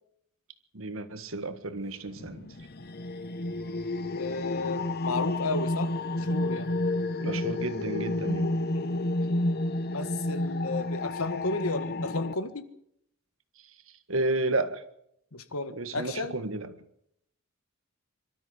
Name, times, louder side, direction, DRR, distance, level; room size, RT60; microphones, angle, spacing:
voice 1, 0.7-2.5 7.2-8.6 14.1-14.8 15.7-16.7, right 2 dB, 70° right, 1.7 m, -32 dB
sound 1, 2.1-12.3, left 2 dB, 50° left, 0.9 m, -30 dB
voice 2, 4.1-6.7 8.7-9.0 9.8-12.7 15.3-16.4, left 3 dB, 85° left, 1.6 m, -33 dB
24.5 x 13.0 x 8.3 m
head